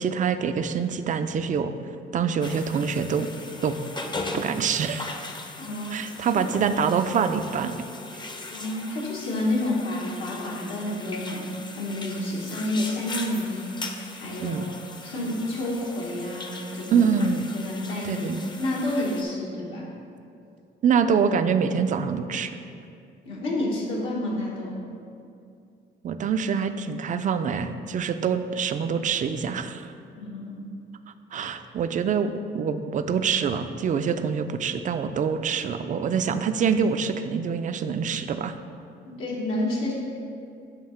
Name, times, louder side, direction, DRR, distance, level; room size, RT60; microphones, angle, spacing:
voice 1, 0.0-1.7 2.1-3.3 3.6-3.7 4.3-5.1 5.9-7.8 8.1-8.3 14.4-14.7 16.9-17.5 18.0-18.4 20.8-22.5 26.0-29.9 31.3-38.5, right 6 dB, 40° right, 9 dB, 0.4 m, -25 dB
sound 1, 2.4-19.2, left 2 dB, 20° left, 0.5 m, -39 dB
voice 2, 5.6-6.1 8.5-11.4 11.7-14.6 15.0-17.1 17.5-18.3 18.6-19.9 23.2-24.8 30.2-30.7 39.1-39.9, left 1 dB, 85° left, -5 dB, 1.3 m, -29 dB
7.5 x 2.8 x 5.7 m, 2.5 s
cardioid pair, 90°, 20 cm